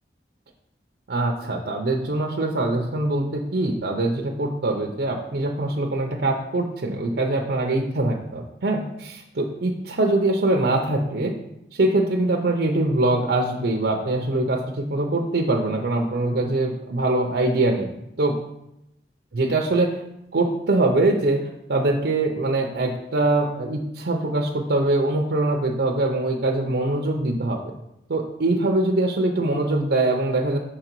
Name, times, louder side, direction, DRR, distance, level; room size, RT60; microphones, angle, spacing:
voice 1, 1.1-11.3 11.7-17.9 18.2-18.4 19.3-20.0 20.3-27.6 28.1-30.6, right 2 dB, 65° right, 1 dB, 0.6 m, -23 dB
6.3 x 3.8 x 4.5 m, 0.83 s
head